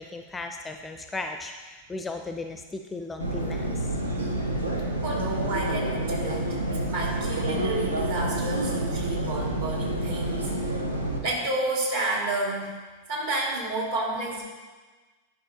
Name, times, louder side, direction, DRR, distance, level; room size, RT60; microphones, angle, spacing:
voice 1, 0.0-3.9, left 3 dB, 10° left, 5 dB, 0.5 m, -36 dB
sound 1, 3.2-11.2, right 1 dB, 80° right, 0.8 m, -28 dB
voice 2, 5.0-6.6 6.9-10.5 11.2-12.7 13.1-14.4, right 2 dB, 55° right, -2 dB, 2.1 m, -30 dB
11.0 x 5.4 x 2.8 m, 1.3 s
figure-of-eight pair, 90°, 0 cm